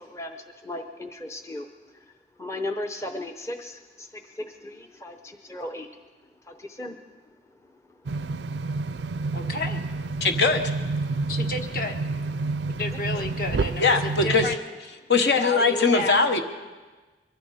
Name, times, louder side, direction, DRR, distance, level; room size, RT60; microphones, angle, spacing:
voice 1, 0.0-1.7 1.9-2.0 2.4-5.9 6.5-7.0 7.9-8.0 8.6-8.7 11.1-11.2 12.7-13.2, left 1 dB, 15° left, 5 dB, 0.6 m, -37 dB
sound 1, 8.1-14.6, right 3 dB, 80° right, 0.4 m, -29 dB
voice 2, 9.3-9.8 11.3-12.0 12.7-14.6 15.3-16.3, left 2 dB, 50° left, 4 dB, 1.4 m, -31 dB
voice 3, 10.2-10.6 13.8-14.4 15.1-16.4, left 4 dB, 75° left, 6 dB, 1.1 m, -21 dB
23.0 x 14.5 x 4.2 m, 1.3 s
head